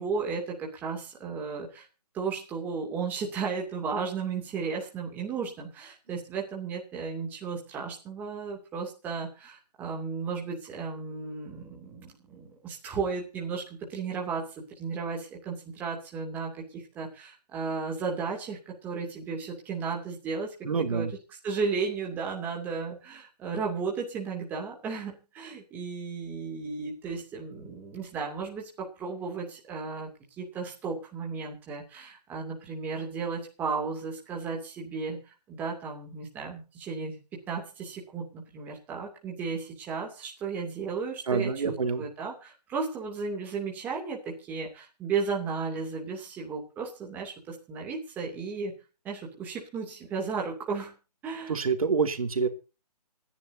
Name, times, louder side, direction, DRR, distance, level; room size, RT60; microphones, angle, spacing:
voice 1, 0.0-1.9 2.1-21.1 21.4-30.1 30.4-35.2 35.5-37.2 37.5-48.7 49.0-50.9 51.2-51.6, right 5 dB, 10° right, -1 dB, 2.7 m, -34 dB
voice 2, 20.6-21.1 41.3-42.1 51.5-52.5, right 5 dB, 60° right, 7 dB, 2.7 m, -27 dB
27.5 x 10.5 x 2.8 m, 0.33 s
hypercardioid pair, 170°, 21 cm